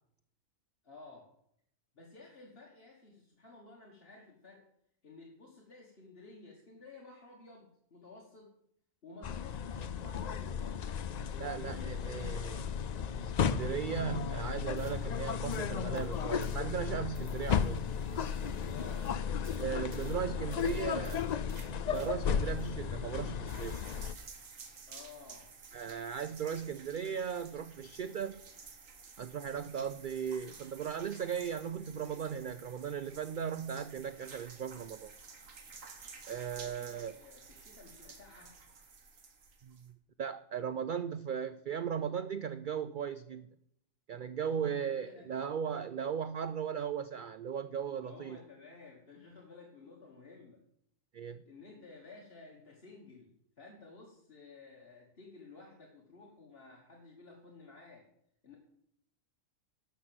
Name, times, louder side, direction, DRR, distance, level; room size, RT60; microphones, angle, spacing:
voice 1, 0.8-1.3 1.9-4.6 5.0-8.5 9.0-12.8 18.7-19.1 20.2-21.2 24.9-25.5 36.4-38.6 44.4-45.3 45.6-45.8 48.0-50.6 51.4-53.3 53.6-58.1 58.4-58.6, left 3 dB, 50° left, -2 dB, 1.8 m, -54 dB
sound 1, 9.2-24.1, left 7 dB, 75° left, 0.4 m, -35 dB
voice 2, 11.4-12.6 13.2-17.8 19.6-21.2 21.9-23.8 25.7-28.4 29.2-35.1 36.3-37.2 39.6-39.8 40.2-43.5 44.1-48.4 51.1-51.4, right 7 dB, 65° right, 13 dB, 0.5 m, -37 dB
sound 2, 14.5-22.7, right 1 dB, 30° right, 1.8 m, -53 dB
sound 3, 23.5-39.9, right 5 dB, 85° right, 1.7 m, -53 dB
12.5 x 5.8 x 7.7 m, 0.72 s
omnidirectional pair, 1.3 m